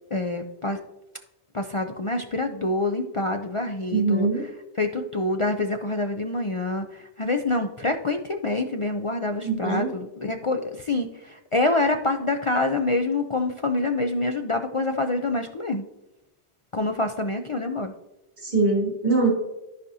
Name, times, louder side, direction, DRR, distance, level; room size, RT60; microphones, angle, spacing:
voice 1, 0.1-0.8 1.5-4.5 4.7-15.8 16.7-17.9, left 2 dB, 45° left, 4 dB, 0.4 m, -26 dB
voice 2, 3.9-4.4 9.4-9.9 18.4-19.3, right 3 dB, 35° right, -6 dB, 2.7 m, -22 dB
13.5 x 5.0 x 2.7 m, 0.97 s
omnidirectional pair, 1.2 m